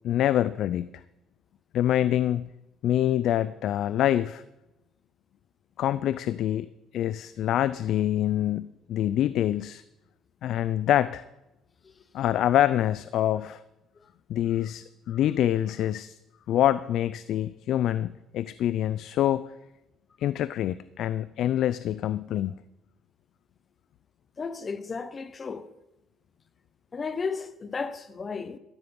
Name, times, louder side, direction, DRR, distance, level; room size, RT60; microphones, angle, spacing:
voice 1, 0.0-0.9 1.7-2.5 2.8-4.4 5.8-9.8 10.4-11.2 12.1-13.6 14.3-16.2 16.5-19.5 20.2-22.5, left 12 dB, 70° left, 0.4 m, -26 dB
voice 2, 24.4-25.7 26.9-28.6, left 5 dB, 30° left, 0.8 m, -34 dB
13.5 x 13.0 x 5.4 m
cardioid pair, 105°, 0 cm